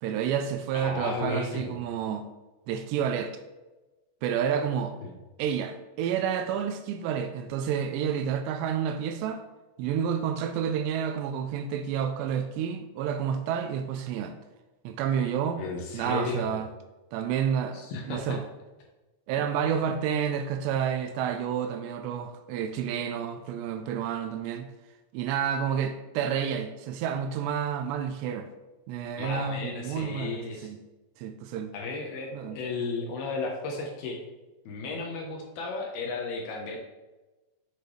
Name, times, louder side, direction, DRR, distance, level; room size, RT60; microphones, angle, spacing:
voice 1, 0.0-2.3 2.7-3.3 4.2-5.0 5.4-9.4 9.8-14.4 14.8-15.6 15.9-16.7 17.1-18.4 19.3-24.7 25.1-28.5 28.9-30.8 31.2-31.7 32.3-32.6, right 8 dB, 80° right, 8 dB, 2.6 m, -30 dB
voice 2, 0.7-1.8 5.0-5.1 15.6-16.6 17.7-18.4 29.2-30.7 31.7-34.2 34.7-36.8, left 3 dB, 70° left, 0 dB, 2.5 m, -34 dB
8.4 x 6.6 x 3.1 m, 1.1 s
omnidirectional pair, 5.1 m